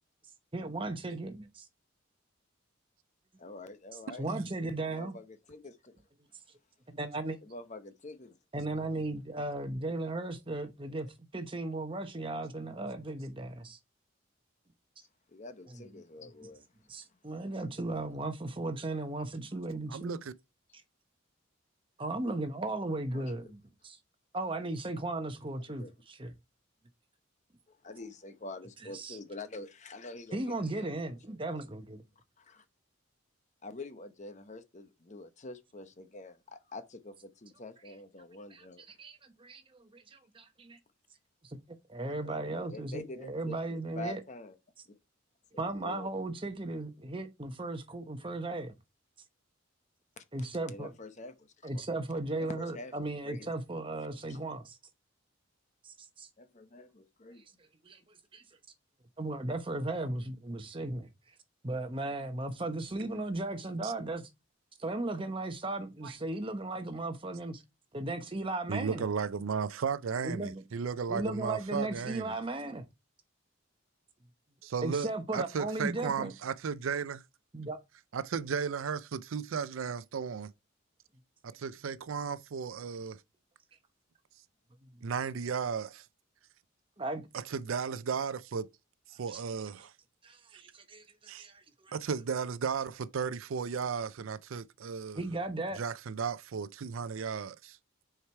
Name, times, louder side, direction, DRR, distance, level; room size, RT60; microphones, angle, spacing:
voice 1, 0.5-1.7 4.2-5.2 6.9-7.4 8.5-13.8 15.7-16.0 16.9-20.2 22.0-24.0 24.3-26.3 28.9-29.2 30.3-32.0 38.5-38.6 39.0-40.8 41.4-41.6 41.9-44.2 45.6-48.7 50.3-50.9 51.6-54.8 55.8-56.3 57.8-58.4 59.2-61.1 61.6-64.3 64.8-67.6 67.9-69.1 70.2-70.6 71.1-72.8 74.8-76.3 77.5-77.8 84.8-85.1 87.0-87.3 89.3-89.4 90.2-91.9 95.1-95.8, right 2 dB, 25° right, 1.0 m, -36 dB
voice 2, 3.4-4.2 4.9-5.9 7.4-8.4 9.9-10.0 11.0-11.1 15.3-16.7 23.1-23.5 25.8-25.9 27.7-31.0 32.4-32.6 33.6-39.0 42.0-44.6 44.9-45.0 45.5-46.1 50.2-50.3 50.7-51.8 52.4-53.5 54.0-54.4 56.4-57.4, left 2 dB, 35° left, 0.8 m, -46 dB
voice 3, 19.9-20.3 63.8-63.9 66.0-66.1 68.7-72.3 74.6-77.2 78.1-80.5 81.4-83.2 85.0-86.1 87.3-88.7 89.1-89.9 91.3-91.5 91.9-95.2 95.8-97.8, right 6 dB, 80° right, 0.4 m, -35 dB
6.6 x 4.7 x 4.5 m
head